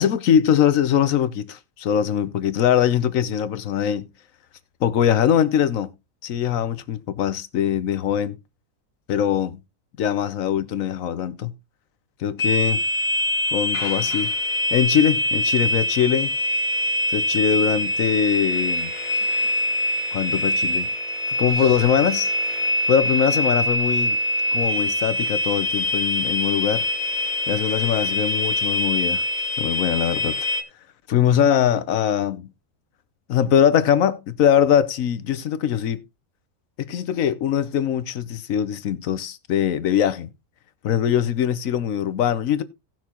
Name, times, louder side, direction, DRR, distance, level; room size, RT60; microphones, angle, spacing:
voice 1, 0.0-4.1 4.8-5.9 6.2-8.4 9.1-9.6 10.0-11.5 12.2-12.8 13.5-14.3 14.7-16.3 17.1-18.9 20.1-20.9 21.4-22.3 22.9-24.2 24.5-26.9 27.5-29.2 29.6-30.4 31.1-32.5 33.3-36.0 36.8-40.3 40.8-42.6, left 9 dB, 70° left, 1.1 m, -22 dB
sound 1, 12.4-30.6, left 1 dB, 45° left, 1.5 m, -24 dB
17.5 x 6.0 x 2.9 m
omnidirectional pair, 1.6 m